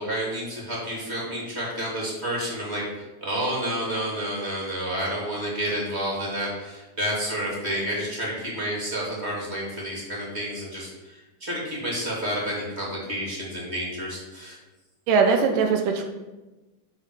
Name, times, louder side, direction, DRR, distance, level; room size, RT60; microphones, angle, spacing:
voice 1, 0.0-14.6, equal, 20° right, -4 dB, 2.5 m, -30 dB
voice 2, 15.1-16.0, right 5 dB, 85° right, 3 dB, 2.6 m, -20 dB
8.6 x 4.8 x 6.6 m, 1.1 s
omnidirectional pair, 3.8 m